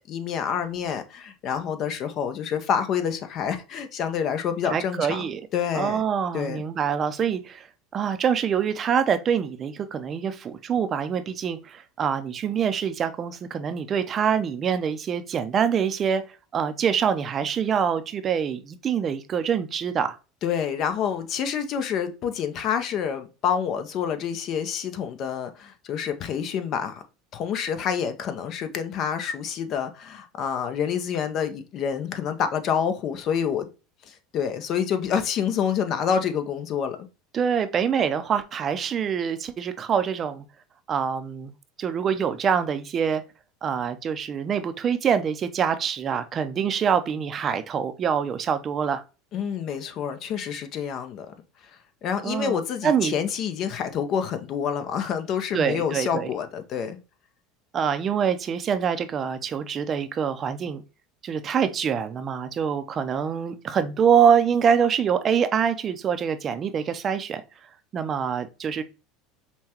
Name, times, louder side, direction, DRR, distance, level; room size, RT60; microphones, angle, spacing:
voice 1, 0.0-6.0 6.3-6.6 20.4-27.0 27.3-33.7 34.1-37.0 49.3-51.3 52.0-57.0, left 7 dB, 50° left, 0.7 m, -28 dB
voice 2, 4.7-5.4 5.7-7.7 7.9-16.2 16.5-20.2 37.3-40.4 40.9-41.5 41.8-43.2 43.6-49.0 52.2-53.1 55.5-56.3 57.7-60.8 61.2-67.4 67.9-68.8, right 7 dB, 35° right, 0.5 m, -25 dB
5.6 x 2.2 x 2.8 m
supercardioid pair, 100°, 0 cm